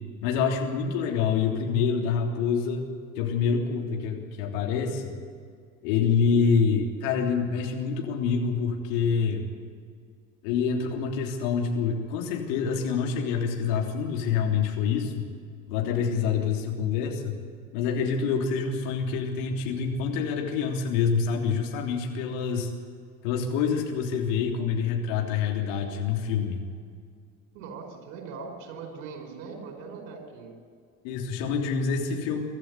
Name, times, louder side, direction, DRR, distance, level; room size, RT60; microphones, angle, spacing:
voice 1, 0.2-2.9 3.2-5.1 5.8-9.4 10.4-15.2 15.7-17.3 17.7-22.7 23.2-26.6 31.0-32.4, left 6 dB, 60° left, 2 dB, 3.4 m, -26 dB
voice 2, 27.5-30.6, right 4 dB, 60° right, 4 dB, 4.9 m, -40 dB
24.0 x 13.5 x 9.6 m, 2.2 s
figure-of-eight pair, 65°, 43 cm